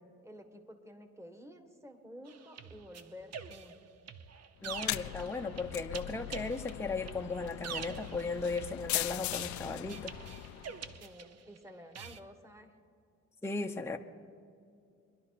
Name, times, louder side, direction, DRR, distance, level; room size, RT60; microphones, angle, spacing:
voice 1, 0.2-3.8 11.0-12.7, equal, 10° right, 6 dB, 1.6 m, -51 dB
sound 1, 2.3-11.6 11.9-12.2, right 7 dB, 55° right, 0.9 m, -46 dB
sound 2, 4.6-11.0, left 16 dB, 75° left, 0.5 m, -40 dB
voice 2, 4.6-10.1 13.4-14.0, left 3 dB, 10° left, 3 dB, 0.8 m, -36 dB
23.5 x 11.0 x 4.1 m, 2.5 s
cardioid pair, 90°, 30 cm